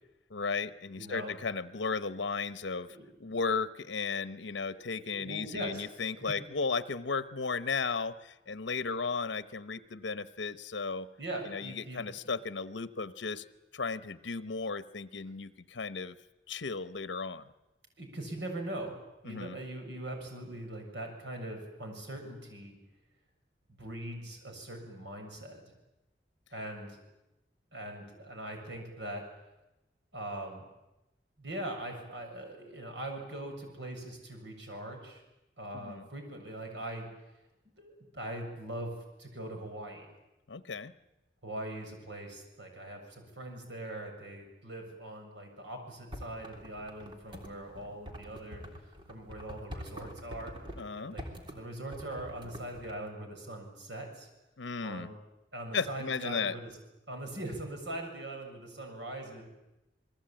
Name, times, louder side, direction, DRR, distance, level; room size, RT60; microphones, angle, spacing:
voice 1, 0.3-11.1 11.5-13.4 13.7-16.2 16.5-17.4 19.3-19.6 35.7-36.0 40.5-40.9 50.8-51.1 54.6-55.1 55.7-56.5, left 4 dB, 85° left, 13 dB, 0.9 m, -35 dB
voice 2, 1.0-1.3 2.9-3.4 4.7-5.8 6.1-6.3 11.2-12.3 18.0-22.8 23.7-25.6 26.5-27.0 27.7-29.3 30.1-30.7 31.4-35.2 35.6-37.1 37.8-40.1 41.4-48.6 49.1-50.6 50.9-54.3 54.8-55.2 55.5-56.7 57.1-59.4, right 1 dB, 80° right, 3 dB, 7.1 m, -41 dB
sound 1, 46.1-50.9 51.2-51.6 51.9-52.9, equal, 25° right, 3.4 m, -45 dB
28.5 x 20.5 x 8.9 m, 0.98 s
head